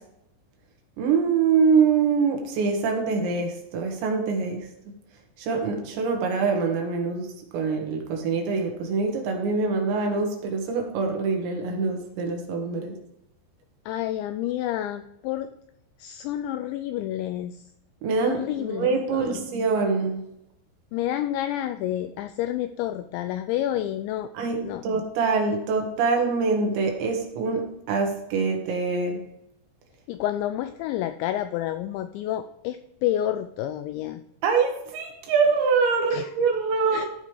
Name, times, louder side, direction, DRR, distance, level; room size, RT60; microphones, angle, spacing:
voice 1, 1.0-4.6 5.4-7.3 7.5-13.0 18.0-20.2 24.4-29.2 34.4-37.1, right 5 dB, 70° right, 2 dB, 3.6 m, -24 dB
voice 2, 13.9-15.5 16.0-17.6 18.2-19.4 20.9-24.3 24.6-24.8 30.1-34.2 36.1-36.3 36.9-37.1, left 12 dB, 85° left, 10 dB, 2.6 m, -29 dB
14.0 x 5.3 x 4.9 m, 0.79 s
omnidirectional pair, 5.6 m